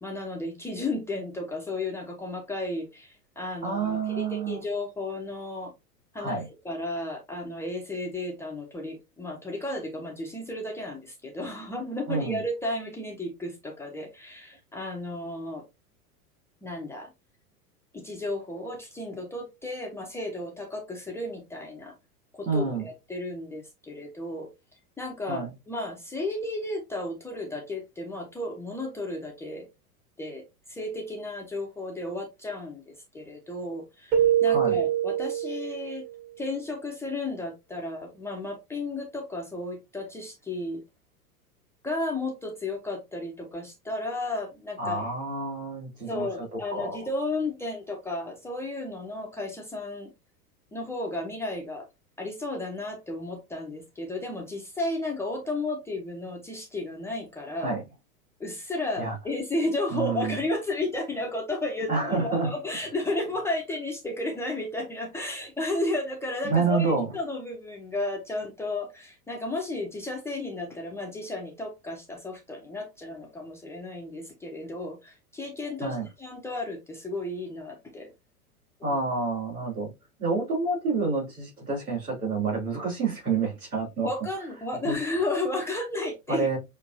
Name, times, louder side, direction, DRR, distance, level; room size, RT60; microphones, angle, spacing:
voice 1, 0.0-5.7 6.1-15.6 16.6-17.1 17.9-21.9 22.3-24.5 25.0-29.7 30.2-30.4 30.7-36.1 36.4-40.8 41.8-45.1 46.1-50.1 50.7-51.9 52.2-57.8 58.4-78.1 78.8-79.0 84.0-86.5, left 2 dB, 5° left, 0.5 m, -33 dB
voice 2, 3.6-4.6 6.2-6.5 12.1-12.4 22.4-22.9 25.3-25.5 34.4-34.8 44.8-47.0 57.6-57.8 59.0-59.2 59.9-60.4 61.9-62.5 66.4-67.1 75.8-76.1 78.8-79.9 80.2-84.1 84.8-84.9 86.3-86.6, right 4 dB, 80° right, 2.9 m, -28 dB
Keyboard (musical), 34.1-36.1, right 10 dB, 30° right, 1.0 m, -24 dB
6.1 x 2.5 x 2.6 m
figure-of-eight pair, 90°, 44 cm